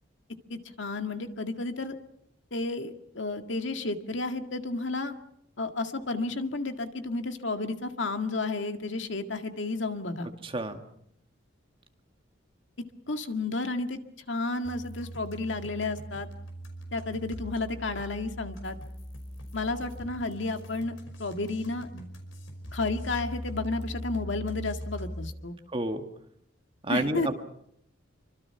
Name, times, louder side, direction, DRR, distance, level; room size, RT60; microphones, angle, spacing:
voice 1, 0.5-2.0 2.5-5.1 5.6-10.3 13.1-14.0 14.3-16.3 16.9-18.8 19.5-20.9 21.2-22.1 22.7-25.6 26.9-27.3, left 3 dB, 70° left, 6 dB, 2.0 m, -32 dB
voice 2, 10.4-10.8 25.7-26.0 26.8-27.4, right 2 dB, 30° right, 5 dB, 2.0 m, -30 dB
sound 1, 14.6-25.3, equal, 90° left, 5.2 m, -40 dB
28.0 x 25.0 x 5.8 m, 0.71 s
head